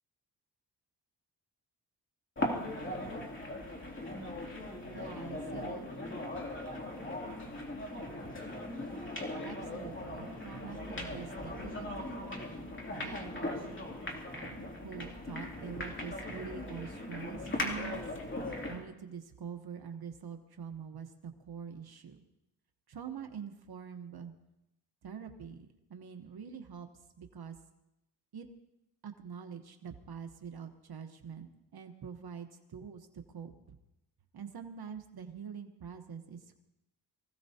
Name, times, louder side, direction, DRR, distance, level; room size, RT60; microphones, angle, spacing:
sound 1, 2.4-18.9, left 1 dB, 30° left, 2.7 m, -39 dB
voice 1, 4.9-5.9 9.4-12.2 13.0-18.0 18.7-22.2 22.9-24.3 25.0-27.6 28.3-28.5 29.0-33.5 34.3-36.6, right 7 dB, 65° right, 6 dB, 1.1 m, -45 dB
24.5 x 16.0 x 2.8 m, 0.88 s
wide cardioid pair, 105°, 40 cm